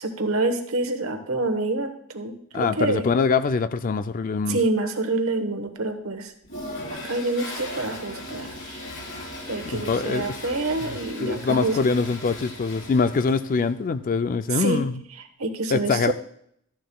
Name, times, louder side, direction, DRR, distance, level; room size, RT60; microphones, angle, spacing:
voice 1, 0.0-3.1 4.5-6.3 6.9-8.8 9.5-11.8 14.5-14.8 15.1-16.1, right 2 dB, 65° right, 7 dB, 1.2 m, -27 dB
voice 2, 2.5-4.6 9.7-10.4 11.2-15.0 15.7-16.1, left 4 dB, 40° left, 12 dB, 0.4 m, -23 dB
Toilet flush, 6.4-13.7, left 1 dB, 60° left, 4.0 m, -37 dB
13.5 x 10.0 x 2.3 m, 0.70 s
head